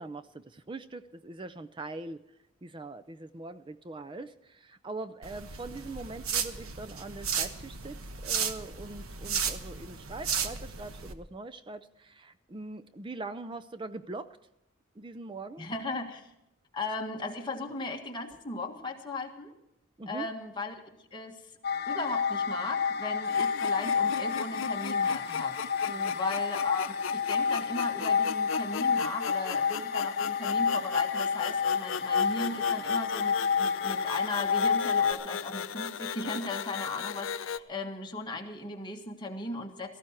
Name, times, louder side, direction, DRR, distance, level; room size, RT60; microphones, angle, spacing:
voice 1, 0.0-2.2 2.6-14.4 15.0-15.7 20.0-20.3 25.8-26.1, right 2 dB, 25° right, 11 dB, 0.5 m, -42 dB
sound 1, 5.2-11.1, right 6 dB, 90° right, 1.2 m, -34 dB
voice 2, 15.6-16.3 16.7-19.5 20.1-20.8 21.1-21.4 21.9-25.6 25.9-40.0, left 2 dB, 20° left, 1 dB, 1.7 m, -37 dB
sound 2, 21.6-35.1, left 6 dB, 50° left, 0.9 m, -29 dB
sound 3, 23.2-37.6, left 7 dB, 65° left, 0.6 m, -38 dB
17.5 x 14.5 x 4.4 m, 0.85 s
head